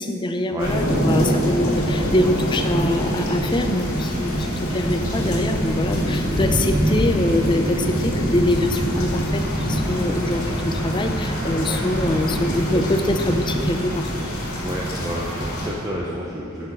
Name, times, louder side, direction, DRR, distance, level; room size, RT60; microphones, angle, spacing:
voice 1, 0.0-14.1, left 1 dB, 20° left, 6 dB, 0.5 m, -24 dB
sound 1, 0.6-15.7, equal, 85° left, 2.0 m, -24 dB
voice 2, 14.6-16.7, equal, 15° right, -4 dB, 0.7 m, -30 dB
10.0 x 6.0 x 5.5 m, 2.7 s
head